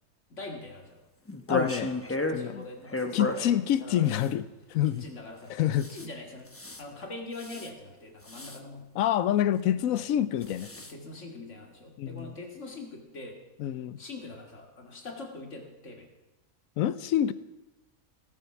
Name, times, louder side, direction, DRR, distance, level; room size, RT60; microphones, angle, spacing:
voice 1, 0.3-1.0 1.9-4.3 5.0-6.5 6.8-8.8 9.7-9.8 10.4-10.6 10.9-13.4 14.0-16.1, left 2 dB, 50° left, 2 dB, 2.3 m, -43 dB
sound 1, 1.3-2.4 2.9-3.5 4.1-4.3 5.8-6.1 6.5-6.8 7.4-7.7 8.3-8.6 10.4-10.9, left 1 dB, 10° left, 0.7 m, -33 dB
voice 2, 1.5-2.0 2.3-2.6 3.1-4.4 4.7-5.1 5.5-5.9 8.9-10.7 12.0-12.3 13.6-14.0 16.8-17.3, left 11 dB, 70° left, 16 dB, 0.9 m, -27 dB
17.0 x 7.6 x 5.9 m, 1.0 s
omnidirectional pair, 1.6 m